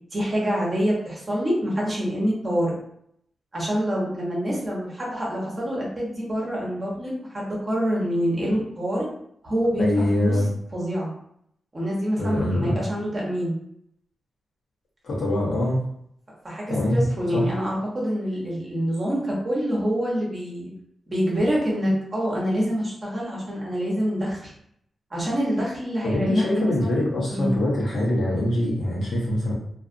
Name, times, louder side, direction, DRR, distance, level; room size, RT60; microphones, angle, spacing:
voice 1, 0.1-2.7 3.5-9.0 9.4-10.4 10.7-11.1 11.7-13.5 16.4-20.7 21.1-24.5 25.1-27.0 27.3-27.5, equal, 25° right, -5 dB, 0.9 m, -26 dB
voice 2, 9.8-10.5 12.2-12.8 15.0-15.8 16.7-17.0 17.3-17.5 26.0-29.5, left 1 dB, 60° left, -5 dB, 1.1 m, -23 dB
2.6 x 2.4 x 2.5 m, 0.71 s
wide cardioid pair, 165°, 0 cm